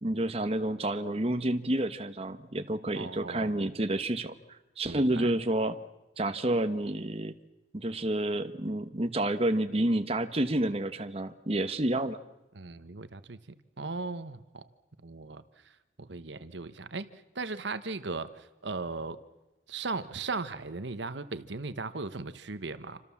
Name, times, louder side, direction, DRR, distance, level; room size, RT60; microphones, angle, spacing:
voice 1, 0.0-5.8 6.2-7.3 7.7-12.2, right 1 dB, 30° right, 8 dB, 1.2 m, -29 dB
voice 2, 2.9-3.8 4.8-5.3 12.5-13.4 13.8-14.7 15.0-19.2 19.7-23.0, right 3 dB, 65° right, 12 dB, 1.2 m, -38 dB
28.0 x 26.0 x 7.2 m, 1.0 s
head